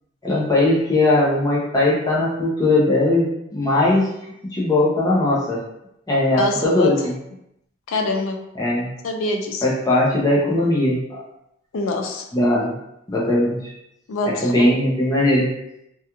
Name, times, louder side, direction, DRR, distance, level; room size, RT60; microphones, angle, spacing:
voice 1, 0.2-4.1 4.5-5.6 6.1-7.2 8.6-8.9 9.6-11.2 12.3-12.8 13.1-13.7 14.3-15.5, left 1 dB, 15° left, -5 dB, 0.5 m, -19 dB
voice 2, 6.4-7.1 7.9-8.4 9.0-9.6 11.7-12.2 14.1-14.7, left 2 dB, 75° left, 3 dB, 0.4 m, -24 dB
2.8 x 2.4 x 2.3 m, 0.81 s
head